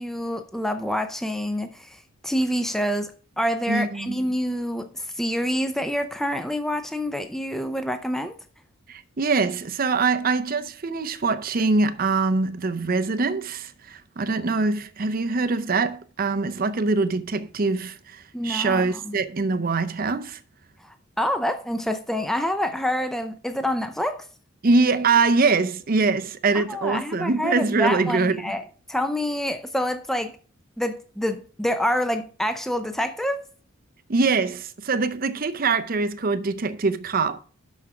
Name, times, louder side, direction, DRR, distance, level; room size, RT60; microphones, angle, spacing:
voice 1, 0.0-8.3 18.3-19.1 20.8-24.3 26.5-30.3 30.8-33.4, equal, ahead, 0.5 m, -27 dB
voice 2, 3.7-4.1 8.9-20.4 24.6-28.5 34.1-37.4, right 4 dB, 45° right, 0.6 m, -23 dB
6.2 x 5.8 x 5.9 m
head